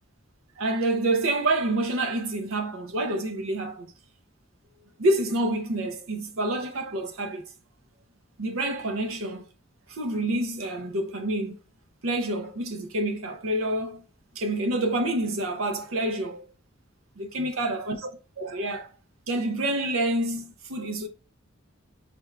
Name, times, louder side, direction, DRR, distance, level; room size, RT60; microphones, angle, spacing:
voice 1, 0.6-3.9 5.0-7.4 8.4-9.4 9.9-11.6 12.0-14.0 14.3-16.4 17.2-18.1 18.4-18.9 19.3-21.1, right 1 dB, 80° right, 0.7 m, -27 dB
4.4 x 3.4 x 2.4 m
head